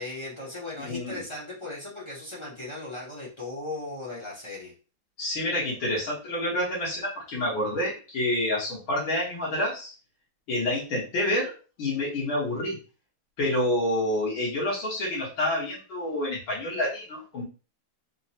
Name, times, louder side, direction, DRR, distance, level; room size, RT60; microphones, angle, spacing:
voice 1, 0.0-4.7, left 2 dB, 50° left, -7 dB, 0.3 m, -37 dB
voice 2, 0.8-1.2 5.2-9.9 10.5-12.8 13.4-17.4, left 1 dB, 70° left, -7 dB, 2.0 m, -28 dB
4.4 x 2.1 x 2.8 m, 0.35 s
omnidirectional pair, 2.4 m